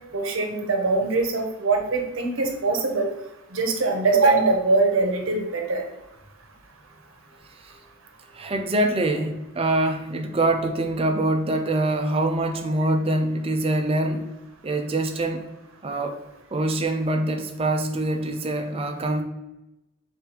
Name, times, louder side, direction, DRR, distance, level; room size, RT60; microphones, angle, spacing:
voice 1, 0.1-3.1 3.5-5.8, right 3 dB, 60° right, 3 dB, 0.8 m, -22 dB
voice 2, 8.3-14.3 14.6-15.4 15.8-16.2 16.5-19.2, right 1 dB, 25° right, 4 dB, 0.4 m, -24 dB
3.3 x 3.1 x 4.7 m, 0.94 s
head